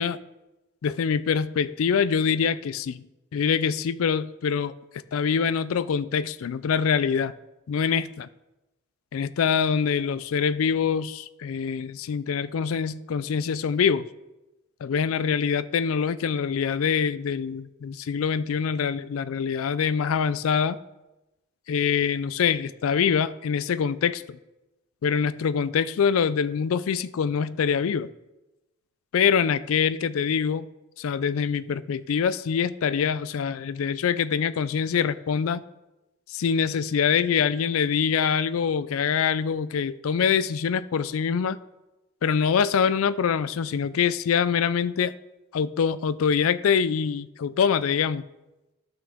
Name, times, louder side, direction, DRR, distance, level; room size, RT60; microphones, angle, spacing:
voice 1, 0.8-3.0 3.3-4.7 5.1-7.3 7.7-8.3 9.1-14.1 14.8-20.8 21.7-24.4 25.0-28.1 29.1-30.7 31.0-35.6 36.3-41.6 42.2-45.1 45.5-48.2, left 7 dB, 85° left, 16 dB, 0.4 m, -24 dB
12.5 x 6.0 x 3.6 m, 1.0 s
head